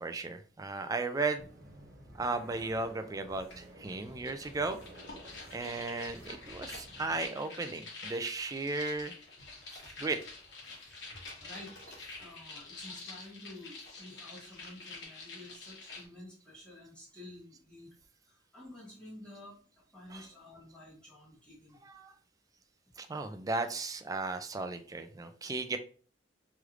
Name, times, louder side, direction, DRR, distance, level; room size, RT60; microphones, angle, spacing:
voice 1, 0.0-1.5 2.1-4.8 5.5-9.1 9.7-10.2 20.1-20.3 21.8-22.1 23.0-25.8, right 3 dB, 20° right, 8 dB, 0.3 m, -35 dB
sound 1, 1.4-7.2, right 1 dB, 60° right, 0.9 m, -53 dB
sound 2, 3.5-3.6 3.9-16.1, left 3 dB, 70° left, 1.2 m, -47 dB
sound 3, 8.0-13.3, left 1 dB, 90° left, 1.3 m, -59 dB
voice 2, 11.4-11.7 12.2-17.9 18.2-19.6 19.9-21.8, left 1 dB, 5° left, -9 dB, 1.1 m, -51 dB
3.1 x 3.1 x 2.4 m, 0.42 s
head